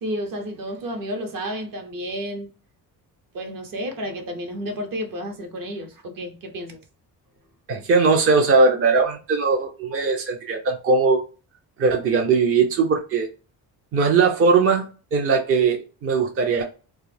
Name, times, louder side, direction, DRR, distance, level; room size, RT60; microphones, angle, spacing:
voice 1, 0.0-2.5 3.3-6.8 9.9-10.1, equal, 55° right, 0.9 m, -31 dB
voice 2, 7.7-11.2 11.8-13.3 13.9-16.6, right 4 dB, 35° right, 0.5 m, -19 dB
2.3 x 2.1 x 3.2 m
cardioid pair, 110°, 40 cm